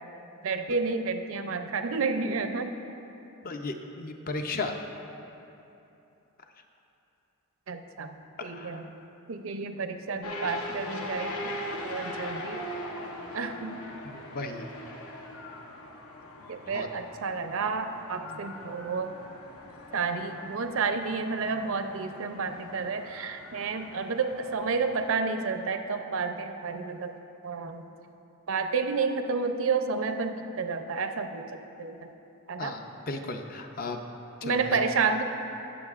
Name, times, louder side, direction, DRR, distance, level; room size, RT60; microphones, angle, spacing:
voice 1, 0.4-2.7 7.7-8.1 8.4-8.9 9.3-11.6 11.8-12.7 13.3-13.8 16.5-19.2 19.9-27.1 27.4-27.8 28.5-32.0 32.5-32.8 34.4-35.2, right 4 dB, 65° right, 7 dB, 0.5 m, -30 dB
voice 2, 3.4-4.8 8.4-8.9 14.0-14.7 16.6-16.9 32.6-34.0 34.4-34.8, left 3 dB, 40° left, 5 dB, 0.5 m, -35 dB
sound 1, 10.2-25.1, left 1 dB, 75° left, 0.9 m, -41 dB
18.5 x 7.1 x 2.4 m, 2.9 s
head